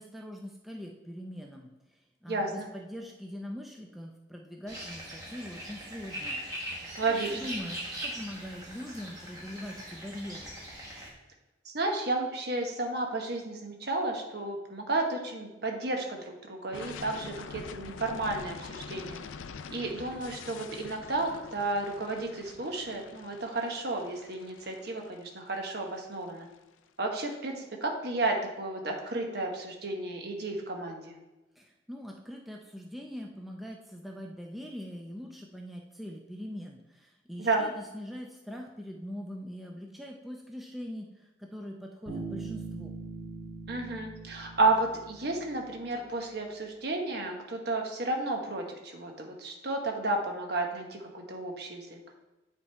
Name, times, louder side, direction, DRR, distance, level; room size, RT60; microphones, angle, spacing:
voice 1, 0.0-1.7 2.2-6.6 7.3-10.6 31.6-42.9, equal, ahead, 0 dB, 0.4 m, -42 dB
voice 2, 2.3-2.7 7.0-7.4 11.6-19.2 19.7-26.5 27.0-31.1 37.4-37.7 43.7-51.9, right 2 dB, 55° right, 1 dB, 1.1 m, -32 dB
sound 1, 4.7-11.1, equal, 20° right, 1.3 m, -40 dB
sound 2, 16.7-26.5, left 5 dB, 85° left, 0.4 m, -45 dB
Bass guitar, 42.1-45.8, right 4 dB, 70° right, 2.7 m, -41 dB
9.4 x 3.6 x 4.4 m, 1.0 s
head